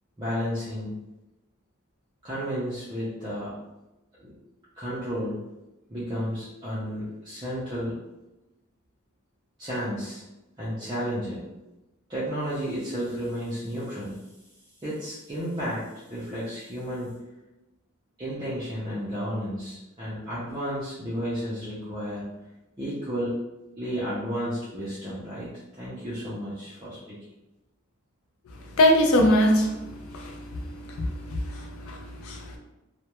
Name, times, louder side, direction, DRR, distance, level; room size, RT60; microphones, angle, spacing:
voice 1, 0.2-0.9 2.2-3.5 4.2-4.3 4.7-5.4 5.9-7.9 9.6-10.2 10.6-11.4 12.1-14.2 14.8-15.8 16.1-17.2 18.2-22.3 22.8-23.4 23.8-25.5 25.8-27.2, equal, 20° right, -10 dB, 0.4 m, -32 dB
voice 2, 28.8-29.8 30.1-30.4 31.0-32.6, left 1 dB, 80° left, 2 dB, 0.4 m, -22 dB
2.2 x 2.1 x 2.9 m, 1.0 s
head